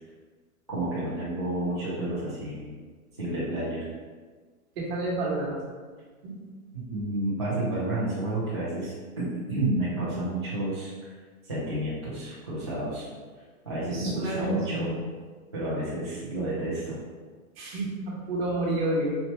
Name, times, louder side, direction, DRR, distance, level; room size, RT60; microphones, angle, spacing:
voice 1, 0.7-2.7 3.2-3.9 6.7-11.1 11.4-13.1 13.6-14.9 15.5-17.0, right 1 dB, 20° right, -11 dB, 0.3 m, -30 dB
voice 2, 4.7-5.6 6.2-6.4 13.8-15.0 17.6-19.2, right 1 dB, 45° right, -4 dB, 1.4 m, -30 dB
4.4 x 2.7 x 4.2 m, 1.5 s
hypercardioid pair, 170°, 43 cm